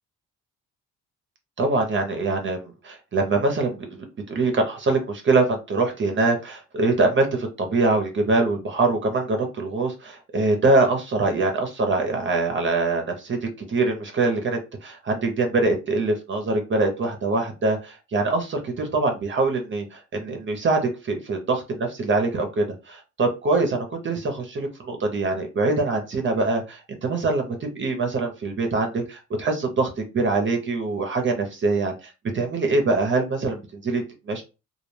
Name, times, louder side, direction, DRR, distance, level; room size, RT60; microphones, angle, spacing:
voice 1, 1.6-13.4 13.7-34.4, right 3 dB, 40° right, 4 dB, 0.6 m, -24 dB
2.3 x 2.1 x 3.1 m, 0.29 s
cardioid pair, 90°, 31 cm